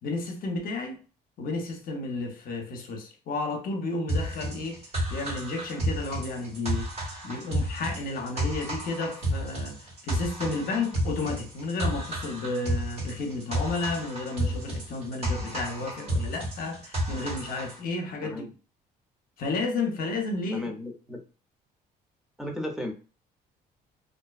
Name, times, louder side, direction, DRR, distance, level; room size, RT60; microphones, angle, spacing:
voice 1, 0.0-1.0 1.4-4.8 5.1-6.9 7.2-18.5 19.4-20.7, left 3 dB, 60° left, 0.7 m, -32 dB
sound 1, 4.1-17.8, equal, 40° right, 1.4 m, -31 dB
voice 2, 20.5-21.2 22.4-22.9, left 1 dB, ahead, 0.6 m, -34 dB
2.5 x 2.3 x 2.3 m
cardioid pair, 110°, 17 cm